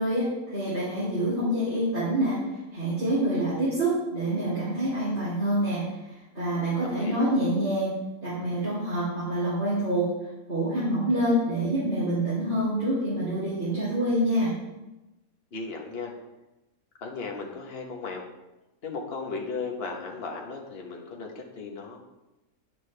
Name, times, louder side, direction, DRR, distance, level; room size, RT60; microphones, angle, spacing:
voice 1, 0.0-2.4 2.7-7.9 8.2-10.1 10.5-14.5, right 1 dB, 45° right, -12 dB, 3.5 m, -26 dB
voice 2, 6.8-7.3 15.5-16.1 17.0-18.2 18.8-22.0, left 4 dB, 45° left, 1 dB, 1.3 m, -36 dB
9.8 x 7.5 x 3.4 m, 1.0 s
omnidirectional pair, 1.5 m